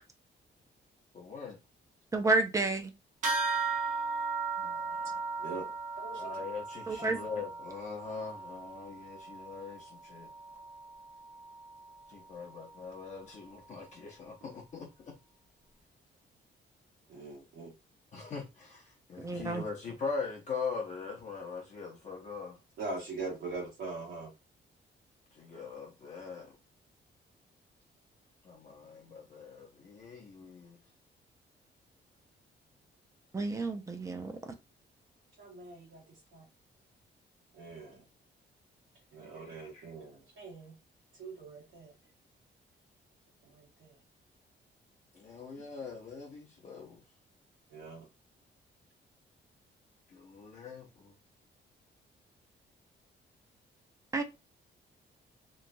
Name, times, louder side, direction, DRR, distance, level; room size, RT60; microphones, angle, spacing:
voice 1, 1.1-1.6 4.6-5.2 6.1-10.3 12.1-14.9 18.1-22.6 25.3-26.6 28.4-30.8 39.3-39.9 45.1-47.0 50.1-51.1, left 5 dB, 40° left, 0.6 m, -42 dB
voice 2, 2.1-2.9 6.9-7.2 19.2-19.6 33.3-34.4 54.1-54.2, right 3 dB, 15° right, 0.4 m, -30 dB
sound 1, 3.2-13.0, right 4 dB, 40° right, 0.8 m, -37 dB
voice 3, 6.0-6.4 17.1-17.7 22.8-24.3 35.4-36.0 36.3-36.4 37.5-38.0 39.1-40.7 41.2-41.9 43.4-44.0 47.7-48.1, right 3 dB, 80° right, 1.3 m, -42 dB
3.0 x 2.2 x 2.5 m
wide cardioid pair, 180°, 19 cm